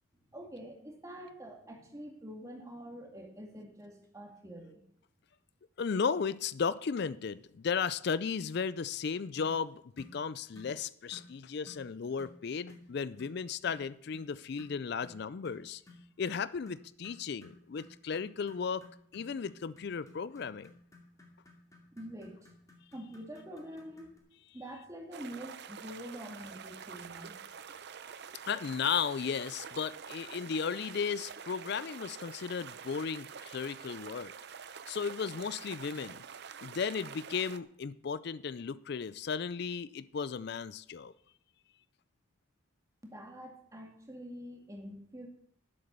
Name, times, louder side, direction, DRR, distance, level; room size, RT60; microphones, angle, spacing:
voice 1, 0.3-4.8 21.9-22.5 22.9-24.1 24.5-27.4 43.0-45.3, equal, 15° right, 2.1 m, -46 dB
voice 2, 5.8-15.8 16.2-18.8 19.1-20.7 28.5-34.3 34.9-36.2 36.6-41.1, left 6 dB, 50° left, 0.4 m, -35 dB
sound 1, 9.4-9.6 10.0-10.2 10.5-10.8 11.1-11.3 11.7-11.9 12.2-12.4 12.7-12.9 13.2-13.4 13.7-13.9 14.1-14.3 14.6-24.2, left 2 dB, 15° left, 2.3 m, -55 dB
sound 2, 25.1-37.6, right 7 dB, 55° right, 0.6 m, -47 dB
11.0 x 7.8 x 6.8 m
head